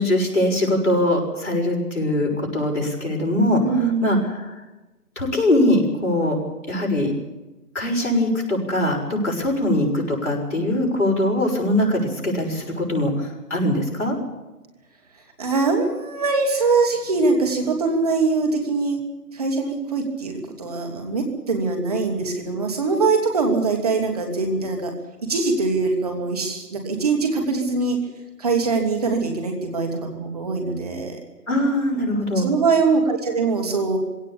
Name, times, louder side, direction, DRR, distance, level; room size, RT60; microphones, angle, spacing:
voice 1, 0.0-3.6 4.0-4.5 5.1-6.4 6.7-7.1 7.7-14.1 31.5-32.5, left 1 dB, 50° left, -1 dB, 6.6 m, -22 dB
voice 2, 3.6-4.2 15.4-19.0 19.3-24.9 25.3-28.0 28.4-31.2 32.4-34.0, right 4 dB, 25° right, 3 dB, 2.7 m, -22 dB
19.5 x 17.5 x 8.5 m, 1.1 s
figure-of-eight pair, 160°, 47 cm